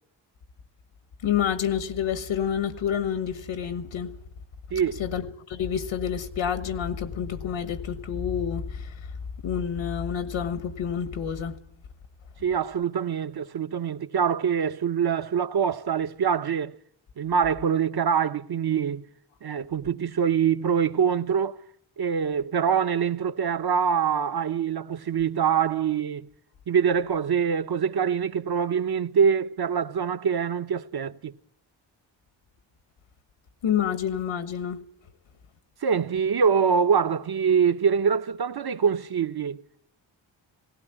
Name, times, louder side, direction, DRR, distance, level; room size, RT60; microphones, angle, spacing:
voice 1, 1.2-4.1 5.0-9.0 9.4-11.6 33.6-34.8, left 8 dB, 90° left, 1.4 m, -28 dB
voice 2, 12.4-16.7 17.2-19.0 19.4-21.6 22.0-26.3 26.7-31.3 35.8-39.6, right 7 dB, 50° right, 1.1 m, -24 dB
18.0 x 17.0 x 9.9 m
cardioid pair, 50°, 48 cm